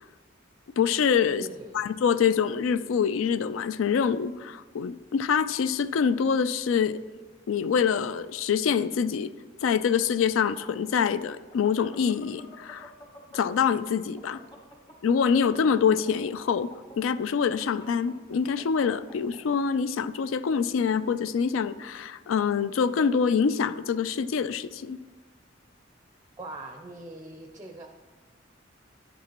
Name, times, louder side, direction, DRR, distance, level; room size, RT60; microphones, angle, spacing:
voice 1, 0.8-1.5 1.7-7.0 7.5-9.3 9.6-12.9 13.3-14.4 15.0-25.0, left 6 dB, 80° left, 15 dB, 0.3 m, -25 dB
voice 2, 1.3-1.9 26.4-27.9, right 2 dB, 15° right, 4 dB, 0.5 m, -42 dB
sound 1, 10.2-13.7 14.0-19.4, left 1 dB, 20° left, 1.3 m, -50 dB
10.0 x 8.4 x 2.9 m, 1.3 s
head